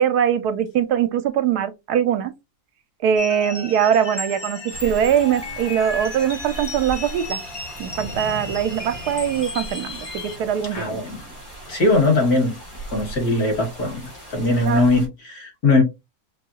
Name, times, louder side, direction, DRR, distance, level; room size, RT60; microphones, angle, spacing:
voice 1, 0.0-2.3 3.0-7.4 7.8-11.0 14.7-14.8, right 9 dB, 75° right, 1.2 m, -22 dB
sound 1, 3.2-10.4, left 2 dB, 25° left, 0.6 m, -34 dB
sound 2, 4.7-15.1, right 1 dB, 80° left, 3.0 m, -38 dB
voice 2, 10.7-11.2 11.7-12.6 12.9-15.8, left 2 dB, 65° left, 2.1 m, -20 dB
5.7 x 2.3 x 2.8 m
omnidirectional pair, 1.7 m